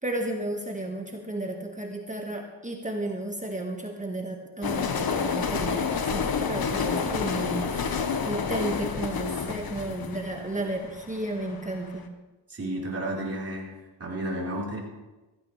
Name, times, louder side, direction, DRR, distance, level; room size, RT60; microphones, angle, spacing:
voice 1, 0.0-12.1, right 1 dB, 15° right, 2 dB, 1.8 m, -33 dB
sound 1, 4.6-11.7, left 6 dB, 50° left, 1.4 m, -29 dB
voice 2, 12.5-13.7 14.0-14.8, right 1 dB, 30° right, -4 dB, 4.6 m, -32 dB
16.0 x 14.5 x 3.4 m, 1.1 s
cardioid pair, 75°, 45 cm